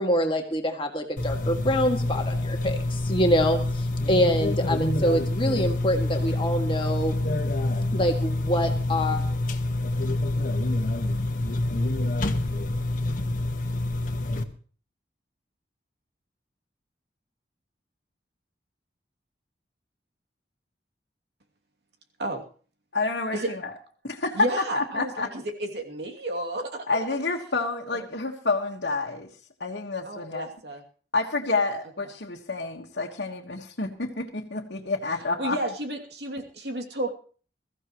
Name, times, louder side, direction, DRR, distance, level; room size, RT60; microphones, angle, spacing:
voice 1, 0.0-7.2 7.9-9.2, equal, 30° left, 3 dB, 2.1 m, -25 dB
sound 1, 1.2-14.4, left 2 dB, 50° left, 1.5 m, -27 dB
voice 2, 22.9-23.7 24.0-24.5 24.7-25.3 26.9-29.3 29.6-30.5 31.1-35.6, left 3 dB, 75° left, -2 dB, 1.6 m, -28 dB
voice 3, 24.3-26.8 30.0-30.8 35.4-37.1, right 1 dB, 75° right, 3 dB, 2.7 m, -32 dB
22.0 x 14.5 x 3.1 m, 0.41 s
head